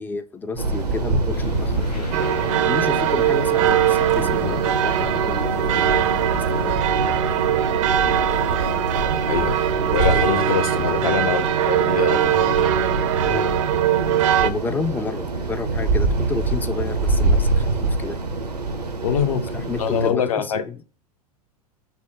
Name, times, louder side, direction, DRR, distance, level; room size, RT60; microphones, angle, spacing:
voice 1, 0.0-2.1 2.7-6.8 8.3-8.6 10.1-10.4 13.2-13.5 14.4-18.2 19.0-20.8, left 4 dB, 10° left, 0.3 m, -31 dB
sound 1, 0.6-20.1, right 2 dB, 85° right, 0.7 m, -25 dB
sound 2, 1.3-6.8, left 2 dB, 85° left, 1.3 m, -34 dB
sound 3, 2.1-14.5, right 10 dB, 55° right, 0.5 m, -21 dB
voice 2, 9.2-9.5 9.9-12.8 19.0-20.6, left 7 dB, 65° left, 0.7 m, -24 dB
5.5 x 2.1 x 4.6 m
figure-of-eight pair, 90°, 20 cm